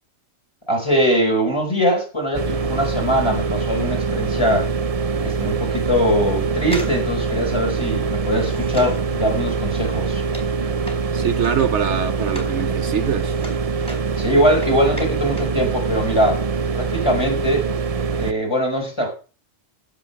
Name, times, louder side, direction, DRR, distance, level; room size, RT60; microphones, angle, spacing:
voice 1, 0.7-4.7 5.2-10.2 14.2-16.4 16.7-17.7 18.2-19.1, equal, 20° left, 4.7 m, -21 dB
sound 1, 2.3-18.3, right 5 dB, 45° right, 0.5 m, -24 dB
sound 2, 6.6-12.6 12.9-15.6 15.9-16.0, equal, 5° left, 3.9 m, -38 dB
voice 2, 11.1-13.3, right 8 dB, 65° right, 1.0 m, -23 dB
15.5 x 5.5 x 6.8 m
omnidirectional pair, 1.3 m